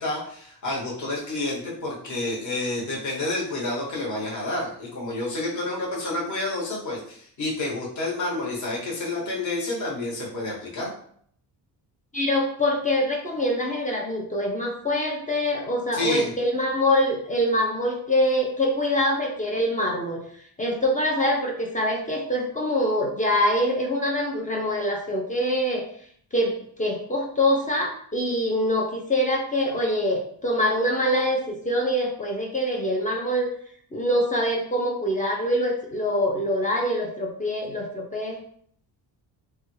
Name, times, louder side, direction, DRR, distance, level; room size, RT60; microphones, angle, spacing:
voice 1, 0.0-10.9 15.9-16.3, left 2 dB, 40° left, -3 dB, 1.1 m, -29 dB
voice 2, 12.1-20.2 20.6-25.8 26.3-33.5 33.9-38.4, left 1 dB, 20° left, -1 dB, 0.4 m, -24 dB
3.2 x 2.2 x 3.1 m, 0.62 s
cardioid pair, 145°, 43 cm